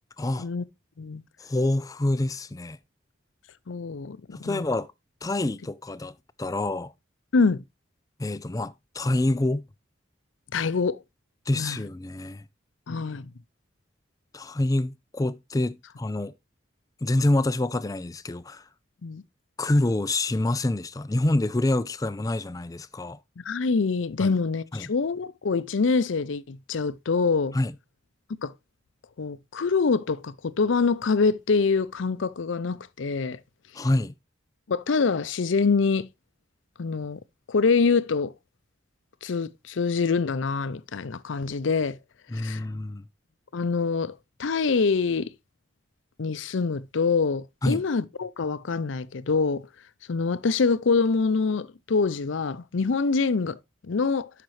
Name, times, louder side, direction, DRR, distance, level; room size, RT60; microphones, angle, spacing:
voice 1, 0.2-0.5 1.4-2.8 4.3-4.9 5.2-6.9 8.2-9.6 11.5-12.4 14.3-16.3 17.0-18.6 19.6-23.2 24.2-24.3 24.7-24.8 27.5-27.7 33.8-34.1 42.3-43.0 47.6-47.8, left 2 dB, 20° left, 0.4 m, -26 dB
voice 2, 3.7-4.6 7.3-7.6 10.5-11.0 11.5-11.8 12.9-13.3 19.0-19.2 23.4-27.6 28.4-28.5 29.2-33.4 34.7-36.1 36.8-37.2 37.5-38.3 39.2-42.0 42.3-42.6 43.5-45.3 46.2-49.7 50.1-54.3, left 4 dB, 75° left, 0.6 m, -25 dB
12.0 x 5.9 x 3.2 m
head